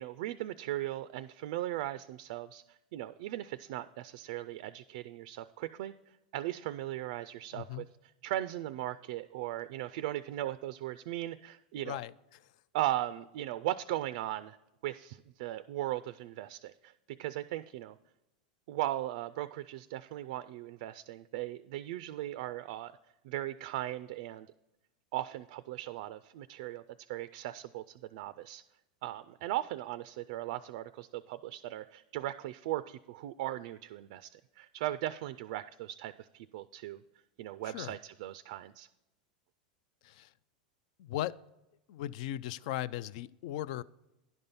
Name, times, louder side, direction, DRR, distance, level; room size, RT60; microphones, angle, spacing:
voice 1, 0.0-5.9 6.3-7.8 8.2-12.0 12.7-14.6 14.8-18.0 18.7-23.0 23.2-24.5 25.1-26.8 27.1-28.6 29.0-37.0 37.4-38.9, right 14 dB, 65° right, 14 dB, 0.3 m, -38 dB
voice 2, 7.5-7.9 11.8-12.5 37.6-38.0 40.0-40.3 41.0-41.4 41.9-43.8, left 13 dB, 65° left, 20 dB, 0.3 m, -38 dB
11.0 x 5.3 x 5.5 m, 0.93 s
hypercardioid pair, 110°, 4 cm